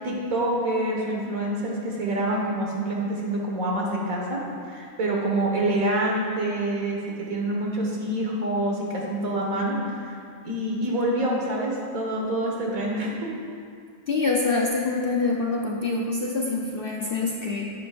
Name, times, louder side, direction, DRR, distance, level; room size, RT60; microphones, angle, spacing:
voice 1, 0.0-10.2 10.4-13.3, right 1 dB, 65° right, -2 dB, 2.0 m, -26 dB
voice 2, 14.1-17.7, left 3 dB, 50° left, -2 dB, 0.7 m, -25 dB
11.5 x 10.0 x 2.5 m, 2.3 s
omnidirectional pair, 1.6 m